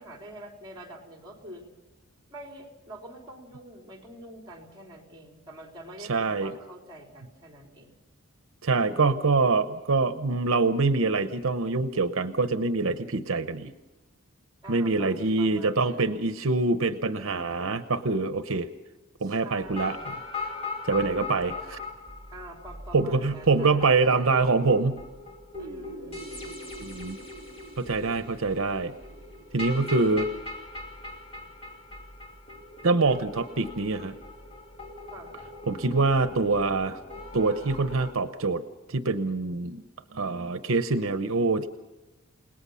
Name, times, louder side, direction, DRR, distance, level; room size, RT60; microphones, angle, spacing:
voice 1, 0.0-1.6 2.3-8.0 8.7-9.4 14.6-16.3 19.2-20.1 22.3-24.4 25.6-26.6 35.1-35.4, right 1 dB, 20° right, 1 dB, 3.8 m, -46 dB
voice 2, 6.1-6.5 8.6-13.7 14.7-18.7 19.2-20.5 20.8-21.8 22.9-25.0 26.8-27.2 27.8-28.9 29.5-30.3 32.8-34.2 35.7-37.0 37.3-38.6 38.9-39.8 40.1-41.7, right 3 dB, 75° right, 10 dB, 0.8 m, -25 dB
sound 1, 19.6-38.1, left 2 dB, 25° left, 2.7 m, -40 dB
30.0 x 18.5 x 5.7 m, 1.1 s
head